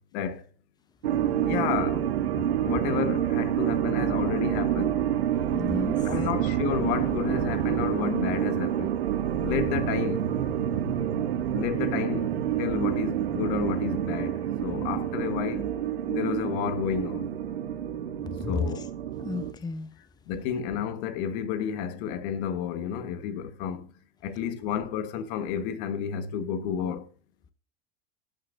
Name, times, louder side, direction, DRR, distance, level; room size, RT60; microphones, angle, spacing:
voice 1, 0.1-0.4 1.4-2.1 2.6-5.0 6.0-9.0 9.4-10.3 11.5-15.7 16.0-17.3 18.5-18.9 20.3-23.9 24.2-27.0, left 8 dB, 60° left, 1.4 m, -31 dB
sound 1, 1.0-19.5, right 10 dB, 85° right, 1.4 m, -28 dB
sound 2, 5.3-15.8, right 9 dB, 70° right, 1.4 m, -36 dB
voice 2, 5.5-6.1 18.4-18.8 19.2-19.9, left 4 dB, 15° left, 0.8 m, -32 dB
17.5 x 6.5 x 2.6 m
hypercardioid pair, 95°, 30 cm